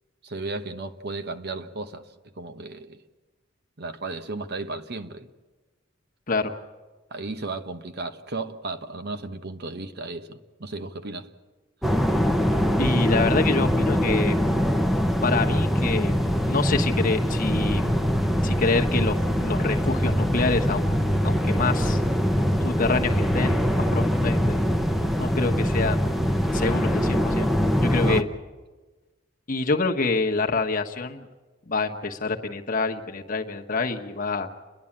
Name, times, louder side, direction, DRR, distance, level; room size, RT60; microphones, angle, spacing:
voice 1, 0.2-2.1 2.4-3.0 3.8-5.3 7.1-11.3 28.0-28.3, right 3 dB, 55° right, 1.1 m, -34 dB
sound 1, 11.8-28.2, equal, ahead, 0.8 m, -23 dB
voice 2, 12.8-14.5 15.2-16.1 16.5-17.9 18.4-19.1 19.4-20.9 21.2-22.0 22.6-24.7 25.2-26.1 26.5-27.5 27.8-28.2 29.5-31.3 31.7-34.5, left 3 dB, 45° left, 1.2 m, -26 dB
29.5 x 11.0 x 8.7 m
head